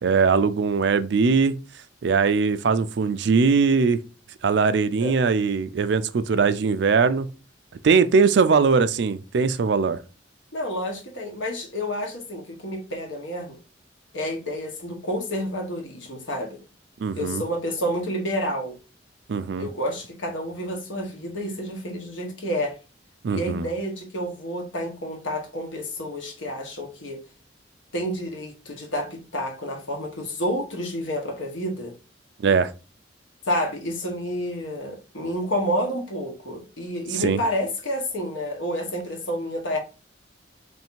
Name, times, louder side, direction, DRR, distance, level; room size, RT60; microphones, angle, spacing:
voice 1, 0.0-1.6 2.0-4.0 4.4-7.3 7.8-10.0 17.0-17.4 19.3-19.7 23.2-23.7 32.4-32.7 37.1-37.4, right 5 dB, 65° right, 0.4 m, -21 dB
voice 2, 10.5-13.6 14.1-16.6 17.1-18.7 19.6-22.7 23.3-27.2 27.9-31.9 33.5-39.8, equal, 90° left, 1.2 m, -29 dB
3.2 x 2.7 x 4.4 m
head